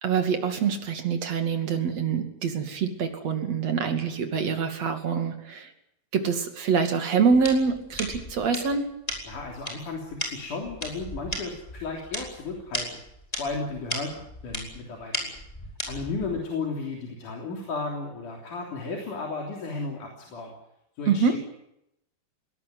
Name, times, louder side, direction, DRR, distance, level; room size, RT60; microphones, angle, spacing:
voice 1, 0.0-5.7 6.1-8.9 21.1-21.4, right 6 dB, 50° right, 6 dB, 3.3 m, -25 dB
sound 1, 7.3-16.4, equal, 10° left, 4.8 m, -36 dB
voice 2, 9.3-13.0 13.3-15.4 15.9-20.5 21.0-21.4, left 3 dB, 60° left, 0 dB, 4.7 m, -34 dB
21.0 x 18.5 x 9.4 m, 0.81 s
omnidirectional pair, 4.2 m